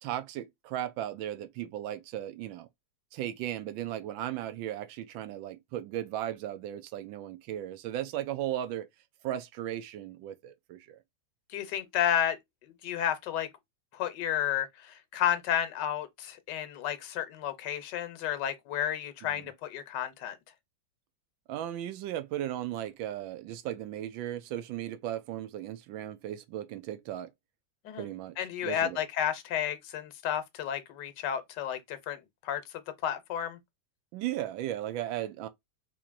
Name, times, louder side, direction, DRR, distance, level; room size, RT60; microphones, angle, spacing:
voice 1, 0.0-2.7 3.1-8.9 9.2-11.0 19.2-19.4 21.5-27.3 28.0-28.4 28.6-29.0 34.1-35.5, right 12 dB, 90° right, 1.3 m, -36 dB
voice 2, 11.5-12.4 12.8-13.5 13.9-20.4 27.8-28.1 28.4-32.6 33.0-33.6, left 10 dB, 70° left, 1.3 m, -32 dB
4.4 x 2.7 x 2.4 m
omnidirectional pair, 2.1 m